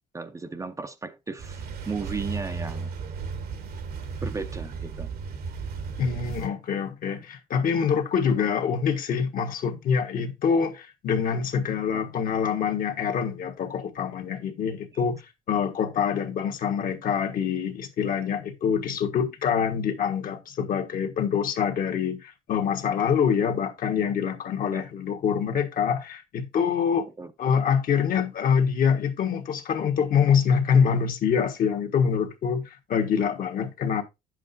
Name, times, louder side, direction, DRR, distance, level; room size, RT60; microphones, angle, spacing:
voice 1, 0.1-2.9 4.2-5.1 11.9-12.0 14.9-15.1 24.7-24.8 27.2-27.3, right 4 dB, 20° right, 0.6 m, -35 dB
sound 1, 1.4-6.5, right 5 dB, 65° right, 1.3 m, -35 dB
voice 2, 6.0-15.2 15.5-27.1 27.4-34.0, left 7 dB, 55° left, 1.4 m, -25 dB
9.1 x 7.5 x 2.6 m
cardioid pair, 110°, 17 cm